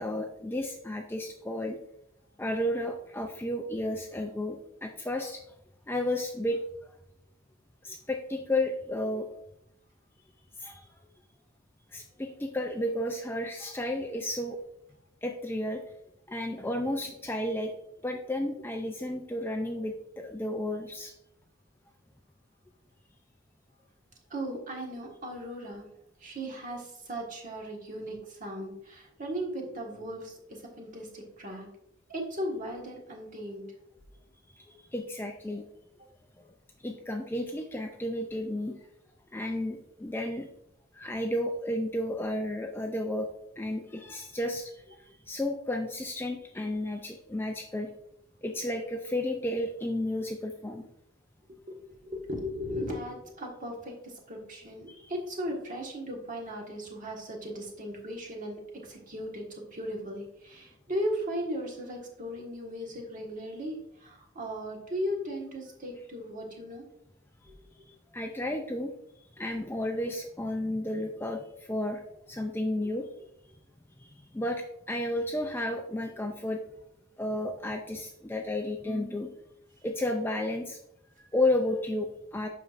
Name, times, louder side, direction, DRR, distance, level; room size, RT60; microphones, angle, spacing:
voice 1, 0.0-1.8 2.4-5.4 5.9-6.9 7.8-9.3 10.6-10.8 11.9-14.6 15.2-15.8 16.3-17.8 18.0-21.1 34.5-35.6 36.8-38.8 39.3-40.5 40.9-43.3 43.6-47.9 48.4-50.9 54.9-55.1 68.1-72.0 72.3-73.3 74.0-76.6 77.2-79.3 79.8-80.8 81.2-82.5, left 1 dB, 10° left, 3 dB, 0.4 m, -32 dB
voice 2, 24.3-25.9 26.2-31.7 32.1-33.7 51.7-66.8, equal, 40° right, 0 dB, 1.5 m, -37 dB
8.2 x 6.0 x 2.5 m, 0.80 s
head